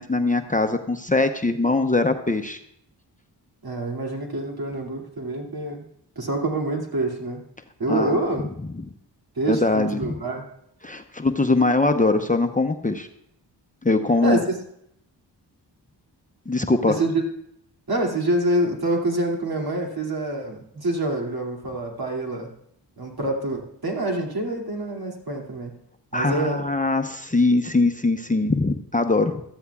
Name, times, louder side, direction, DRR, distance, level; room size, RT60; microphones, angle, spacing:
voice 1, 0.0-2.6 7.9-8.2 9.5-10.0 10.8-13.1 13.8-14.4 16.5-17.0 26.1-29.4, left 3 dB, 20° left, 6 dB, 0.8 m, -21 dB
voice 2, 3.6-5.8 6.2-7.4 7.8-8.5 9.4-10.5 14.2-14.5 16.9-17.2 17.9-22.5 23.0-25.7 26.1-26.6, right 2 dB, 55° right, 1 dB, 2.6 m, -26 dB
14.0 x 13.5 x 2.4 m, 0.74 s
cardioid pair, 50°, 43 cm